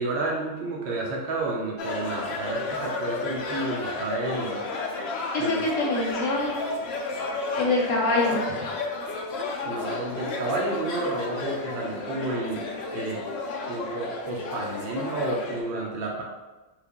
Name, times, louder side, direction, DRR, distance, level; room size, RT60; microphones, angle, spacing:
voice 1, 0.0-4.6 5.4-5.6 9.6-12.7 12.9-13.2 13.7-16.2, right 2 dB, 70° right, -2 dB, 0.5 m, -31 dB
sound 1, 1.8-15.6, left 3 dB, 80° left, 0.5 m, -32 dB
voice 2, 5.3-6.6 7.5-8.7, left 2 dB, 60° left, -3 dB, 1.0 m, -25 dB
3.2 x 2.4 x 3.6 m, 1.1 s
omnidirectional pair, 1.7 m